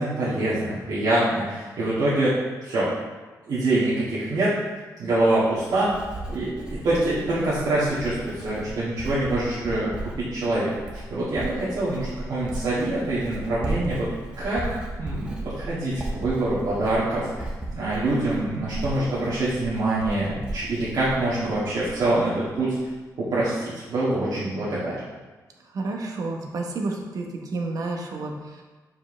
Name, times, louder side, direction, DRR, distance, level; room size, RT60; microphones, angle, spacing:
voice 1, 0.0-2.3 2.6-2.9 3.5-4.5 5.0-5.9 6.3-14.1 14.4-17.4 17.8-22.3 22.6-22.8 23.2-25.0, right 2 dB, 80° right, -12 dB, 1.9 m, -25 dB
Writing, 5.1-22.2 22.5-22.9, right 2 dB, 15° right, 0.8 m, -36 dB
voice 2, 25.7-28.6, right 3 dB, 60° right, 1 dB, 0.9 m, -30 dB
7.1 x 4.8 x 3.2 m, 1.3 s
wide cardioid pair, 155°, 7 cm